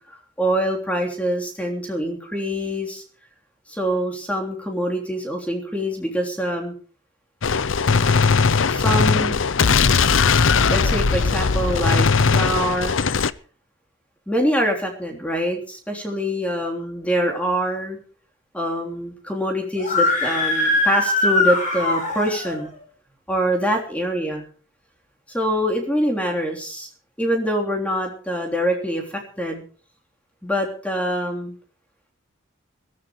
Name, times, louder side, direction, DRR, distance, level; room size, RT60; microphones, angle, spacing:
voice 1, 0.4-3.0 3.7-6.7 8.7-9.4 10.7-12.9 14.3-18.0 18.5-22.7 23.3-24.4 25.3-26.9 27.2-29.6 30.4-31.5, equal, 5° left, 1 dB, 3.3 m, -24 dB
Gunshot gunfire, 7.4-13.3, left 5 dB, 80° left, 0.7 m, -19 dB
Screaming, 19.8-22.6, left 2 dB, 40° left, 7.3 m, -21 dB
22.0 x 14.5 x 3.1 m, 0.42 s
head